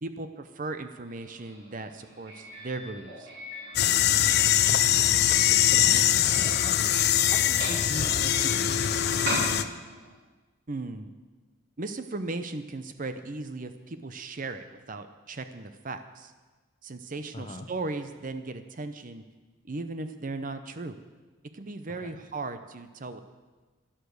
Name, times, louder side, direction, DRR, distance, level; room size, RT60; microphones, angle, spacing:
voice 1, 0.0-3.3 10.7-11.1 11.8-16.3 16.8-19.2 19.6-21.0 21.5-23.2, right 3 dB, 40° right, 9 dB, 0.6 m, -37 dB
Doorbell, 1.1-10.1, equal, 60° right, 5.2 m, -38 dB
sound 1, 3.8-9.6, left 11 dB, 50° left, 0.4 m, -23 dB
voice 2, 5.0-6.8 7.3-9.0 17.3-17.7 22.0-22.2, left 1 dB, 30° left, 7 dB, 0.9 m, -40 dB
12.0 x 11.5 x 6.5 m, 1.3 s
head